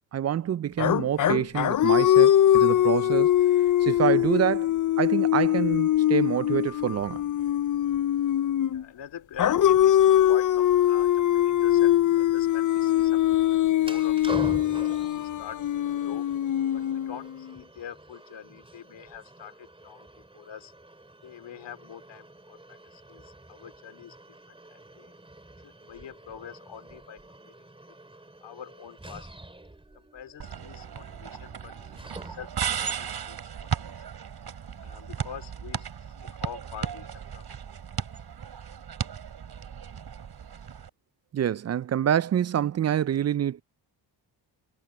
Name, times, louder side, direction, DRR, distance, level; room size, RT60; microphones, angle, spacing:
voice 1, 0.1-3.3 3.8-4.7 5.0-7.2 41.3-43.6, right 10 dB, 35° right, 0.4 m, -26 dB
sound 1, 0.8-8.8 9.4-17.5, left 12 dB, 45° left, 0.6 m, -22 dB
voice 2, 8.7-16.3 16.7-20.1 20.3-20.7 21.2-24.2 24.5-25.1 25.6-27.2 27.4-27.7 28.4-29.3 29.9-34.1 34.8-37.5, left 9 dB, 70° left, 3.3 m, -45 dB
sound 2, 13.8-32.7, right 1 dB, 10° right, 3.6 m, -45 dB
sound 3, 30.4-40.9, right 7 dB, 60° right, 4.8 m, -36 dB
cardioid pair, 85°, 44 cm